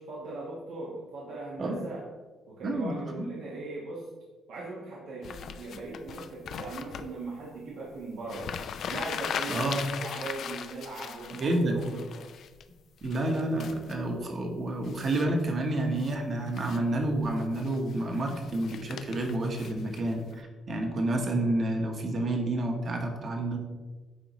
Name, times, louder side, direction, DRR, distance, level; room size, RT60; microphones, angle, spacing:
voice 1, 0.0-2.0 2.5-4.1 4.5-8.5 8.9-12.3, right 2 dB, 80° right, -5 dB, 1.3 m, -39 dB
voice 2, 2.6-3.3 9.5-9.8 11.4-11.8 13.0-23.6, right 1 dB, 50° right, 3 dB, 1.2 m, -29 dB
sound 1, 5.2-7.1 8.0-8.1 8.2-12.6 13.0-14.0 14.8-15.4 15.8-16.2 16.5-16.8 17.2-20.3, left 7 dB, 65° left, 0.4 m, -39 dB
9.6 x 3.9 x 3.1 m, 1.3 s
cardioid pair, 90°, 0 cm